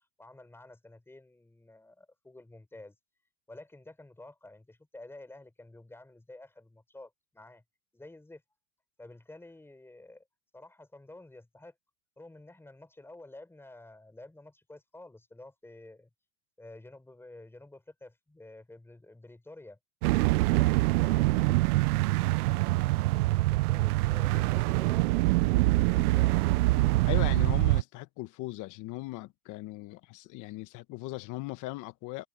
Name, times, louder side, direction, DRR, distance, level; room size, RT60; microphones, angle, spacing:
voice 1, 0.0-2.9 3.5-7.6 7.9-8.4 9.0-10.2 10.5-11.7 12.2-16.1 16.6-19.8 20.5-21.6 22.5-22.8 23.1-25.3 25.8-26.5, left 2 dB, 5° left, 5.0 m, -50 dB
sound 1, 20.0-27.8, right 20 dB, 85° right, 0.6 m, -25 dB
voice 2, 27.1-32.3, left 19 dB, 45° left, 1.2 m, -38 dB
supercardioid pair, 135°, 43 cm